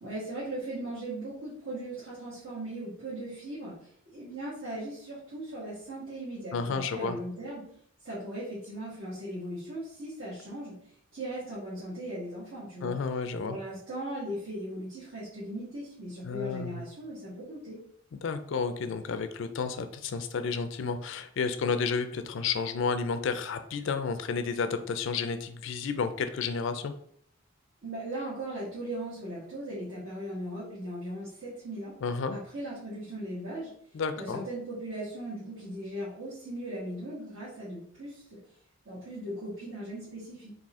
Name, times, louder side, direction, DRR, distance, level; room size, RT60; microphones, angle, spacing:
voice 1, 0.0-7.6 8.0-10.7 11.1-13.0 13.5-17.8 27.8-31.9 32.3-33.7 34.2-38.4 38.8-40.5, right 1 dB, 65° right, -10 dB, 1.4 m, -38 dB
voice 2, 6.5-7.2 12.8-13.6 16.2-16.8 18.2-26.9 32.0-32.4 33.9-34.5, left 5 dB, 60° left, 9 dB, 0.4 m, -31 dB
4.1 x 2.6 x 3.6 m, 0.64 s
head